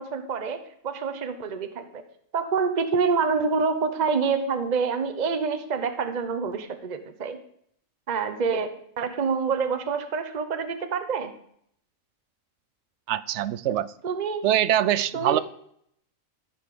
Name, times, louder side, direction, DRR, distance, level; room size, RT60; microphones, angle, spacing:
voice 1, 0.0-2.0 2.3-7.4 8.1-11.3 14.0-14.4 15.1-15.4, right 5 dB, 35° right, 8 dB, 0.9 m, -27 dB
voice 2, 13.1-13.9 14.4-15.4, right 11 dB, 65° right, 17 dB, 0.8 m, -23 dB
13.5 x 5.6 x 6.7 m, 0.68 s
omnidirectional pair, 1.4 m